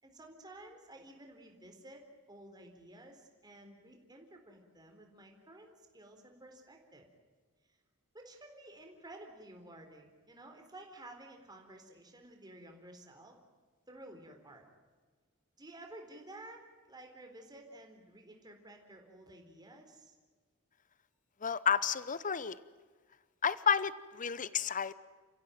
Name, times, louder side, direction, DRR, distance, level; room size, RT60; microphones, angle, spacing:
voice 1, 0.0-7.1 7.7-7.8 8.1-13.4 13.9-14.6 15.6-20.2, right 1 dB, 20° right, 3 dB, 3.9 m, -53 dB
voice 2, 21.4-22.6 23.4-24.9, left 7 dB, 35° left, 17 dB, 0.8 m, -31 dB
29.5 x 15.5 x 9.1 m, 1.4 s
head